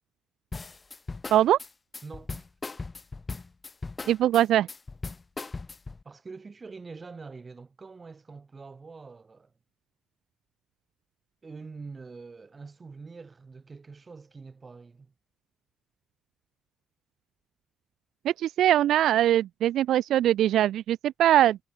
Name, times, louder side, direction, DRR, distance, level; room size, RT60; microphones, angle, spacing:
sound 1, 0.5-6.0, left 3 dB, 25° left, 2.1 m, -38 dB
voice 1, 2.0-2.5 6.0-9.5 11.4-15.1, right 4 dB, 30° right, 5.9 m, -45 dB
voice 2, 4.1-4.7 18.4-21.6, right 12 dB, 75° right, 0.4 m, -22 dB
cardioid pair, 90°, 0 cm